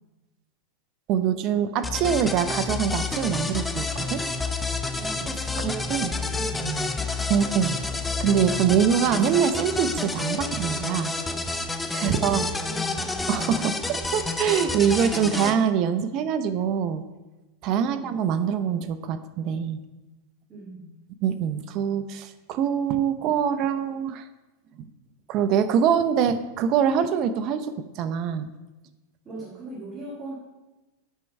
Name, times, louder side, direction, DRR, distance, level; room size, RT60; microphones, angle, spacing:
voice 1, 1.1-4.2 5.6-6.1 7.3-7.8 8.2-11.1 11.9-12.4 13.3-17.0 17.6-19.8 21.2-24.2 24.8-24.9 25.3-28.5, right 8 dB, 45° right, 11 dB, 0.6 m, -24 dB
sound 1, 1.8-15.5, left 3 dB, 10° left, 0.6 m, -29 dB
voice 2, 4.9-7.1 8.6-8.7 12.0-13.3 17.8-18.2 20.5-20.9 29.2-30.3, right 3 dB, 30° right, -5 dB, 2.0 m, -39 dB
9.1 x 4.6 x 5.3 m, 1.1 s
supercardioid pair, 130°, 0 cm